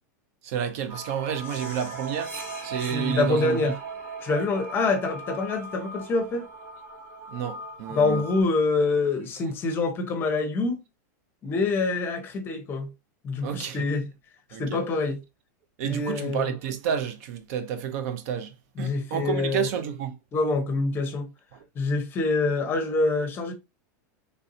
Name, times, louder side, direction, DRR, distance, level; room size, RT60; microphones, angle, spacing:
voice 1, 0.4-2.4 2.6-3.7 7.3-8.2 13.4-13.9 14.5-14.8 15.8-20.2 21.5-21.7, right 8 dB, 50° right, 0.5 m, -30 dB
sound 1, 0.9-8.4, right 3 dB, 70° right, 1.5 m, -38 dB
voice 2, 2.9-3.7 4.2-6.5 7.9-10.8 11.4-12.9 13.2-14.1 14.6-15.2 15.8-16.5 18.8-19.7 20.3-21.3 21.8-23.5, left 3 dB, 20° left, 0.7 m, -26 dB
3.3 x 2.6 x 2.6 m
supercardioid pair, 155°, 10 cm